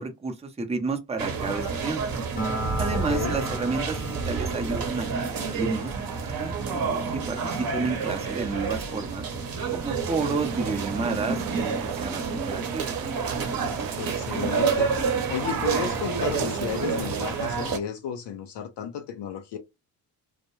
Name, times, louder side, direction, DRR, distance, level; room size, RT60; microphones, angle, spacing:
voice 1, 0.0-2.0 2.8-9.3 9.7-12.9, right 4 dB, 15° right, 0.6 m, -31 dB
sound 1, 1.2-17.8, right 5 dB, 45° right, 0.9 m, -29 dB
Acoustic guitar, 2.4-6.0, equal, 20° left, 0.8 m, -36 dB
voice 2, 2.9-3.4 14.0-14.9 15.3-19.6, left 8 dB, 60° left, 0.6 m, -33 dB
sound 2, 10.0-17.4, right 11 dB, 65° right, 0.6 m, -39 dB
2.2 x 2.0 x 3.1 m
hypercardioid pair, 50°, 48 cm